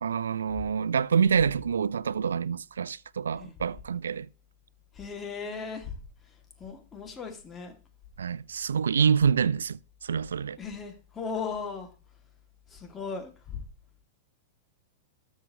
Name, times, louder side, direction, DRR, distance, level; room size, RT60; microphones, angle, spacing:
voice 1, 0.0-4.3 8.2-10.6, right 6 dB, 80° right, 0.4 m, -26 dB
voice 2, 4.9-6.0 6.2-7.7 10.6-11.9 12.7-13.6, left 5 dB, 20° left, 2.6 m, -37 dB
13.0 x 7.3 x 3.2 m
hypercardioid pair, 105°, 0 cm